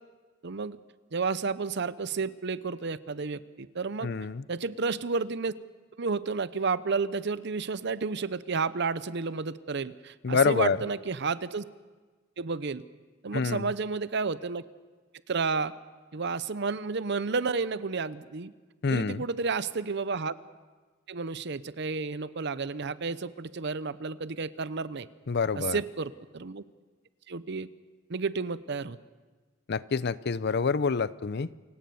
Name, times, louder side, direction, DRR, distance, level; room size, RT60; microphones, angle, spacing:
voice 1, 0.4-0.8 1.1-4.1 4.5-5.5 6.0-11.6 12.4-12.8 13.2-14.6 15.3-15.7 16.1-18.5 18.9-20.3 21.1-25.1 25.6-26.6 27.3-27.7 28.1-29.0, right 4 dB, 60° right, 16 dB, 0.7 m, -31 dB
voice 2, 4.0-4.4 10.2-10.8 13.3-13.7 18.8-19.2 25.3-25.8 29.7-31.5, left 5 dB, 55° left, 17 dB, 0.6 m, -27 dB
28.5 x 17.0 x 7.0 m, 1.4 s
head